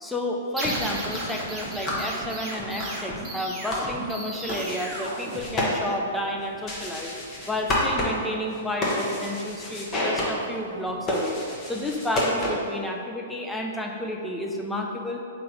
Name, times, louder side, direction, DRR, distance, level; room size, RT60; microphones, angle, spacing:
voice 1, 0.0-15.2, left 1 dB, 5° left, 1 dB, 0.5 m, -31 dB
sound 1, 0.6-6.0, right 1 dB, 15° right, 0.9 m, -34 dB
sound 2, 0.9-12.8, left 1 dB, 30° left, 1.1 m, -31 dB
3.7 x 3.1 x 4.5 m, 2.4 s
hypercardioid pair, 115°, 0 cm